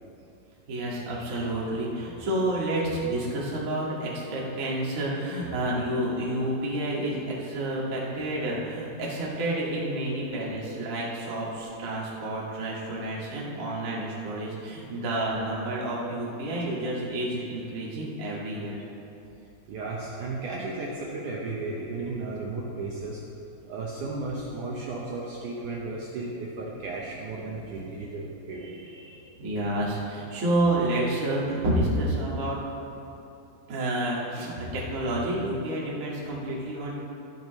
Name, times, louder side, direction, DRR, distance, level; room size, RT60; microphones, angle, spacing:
voice 1, 0.7-18.8 29.4-32.6 33.7-36.9, right 1 dB, 55° right, -5 dB, 0.9 m, -29 dB
voice 2, 19.7-23.2 23.7-29.3, right 3 dB, 75° right, -3 dB, 1.9 m, -34 dB
13.0 x 12.5 x 3.1 m, 2.8 s
omnidirectional pair, 4.7 m